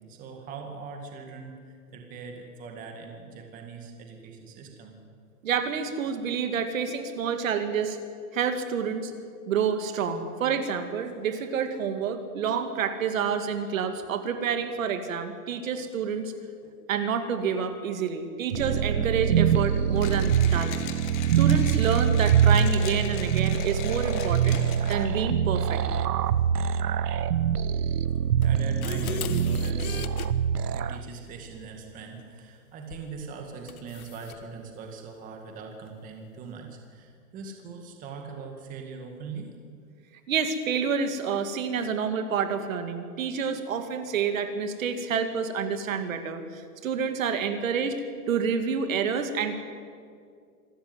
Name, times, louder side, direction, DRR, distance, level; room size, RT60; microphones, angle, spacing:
voice 1, 0.1-5.0 16.6-16.7 28.4-30.0 30.7-39.6, right 5 dB, 15° right, 3 dB, 2.0 m, -41 dB
voice 2, 5.4-8.0 8.3-9.1 9.5-16.3 16.9-20.9 21.3-24.6 24.9-25.8 40.3-49.6, right 6 dB, 55° right, 8 dB, 2.2 m, -28 dB
sound 1, 18.5-31.0, right 8 dB, 75° right, 1.2 m, -24 dB
Mechanisms, 20.0-25.2, left 9 dB, 30° left, 2.0 m, -41 dB
sound 2, 28.4-30.3 32.9-33.1 33.7-34.4, left 7 dB, 60° left, 1.5 m, -37 dB
26.5 x 13.5 x 9.5 m, 2.2 s
hypercardioid pair, 165°, 48 cm